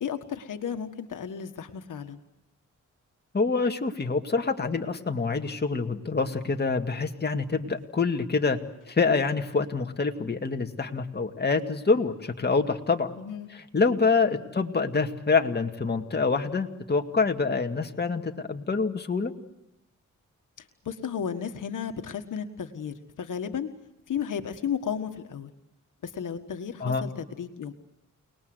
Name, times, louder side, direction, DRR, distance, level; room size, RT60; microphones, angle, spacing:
voice 1, 0.0-2.2 13.2-13.5 14.3-14.5 20.6-23.7 24.1-25.5 26.0-27.7, left 7 dB, 85° left, 7 dB, 1.6 m, -34 dB
voice 2, 3.3-8.6 8.9-13.1 13.5-19.3 26.8-27.0, left 4 dB, 35° left, 4 dB, 2.1 m, -26 dB
29.5 x 20.0 x 7.9 m, 0.92 s
cardioid pair, 90°, 31 cm